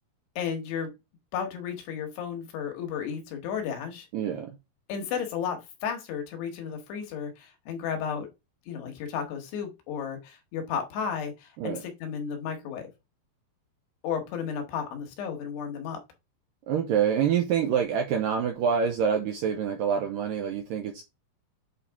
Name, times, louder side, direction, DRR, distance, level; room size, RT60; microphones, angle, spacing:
voice 1, 0.4-0.9 1.3-4.1 4.9-8.3 8.7-12.9 14.0-16.0, left 7 dB, 80° left, 3.4 m, -33 dB
voice 2, 4.1-4.6 11.6-11.9 16.7-21.0, right 7 dB, 80° right, 2.0 m, -26 dB
8.4 x 4.1 x 3.6 m
omnidirectional pair, 4.8 m